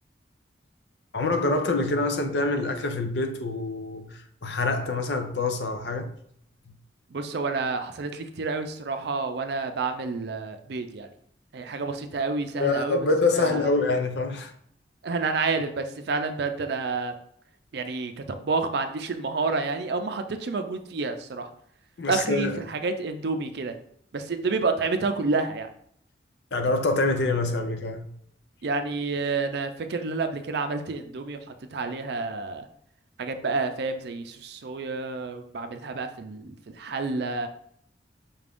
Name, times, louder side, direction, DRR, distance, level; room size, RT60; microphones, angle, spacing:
voice 1, 1.1-6.1 12.6-14.5 22.0-22.6 26.5-28.1, left 3 dB, 70° left, 0.6 m, -26 dB
voice 2, 7.1-11.1 11.5-13.0 13.4-13.7 15.0-17.1 17.7-21.5 22.1-23.7 24.1-25.7 28.6-31.4 31.7-32.7 33.2-37.5, right 4 dB, 65° right, 0.5 m, -29 dB
5.5 x 2.5 x 3.5 m
head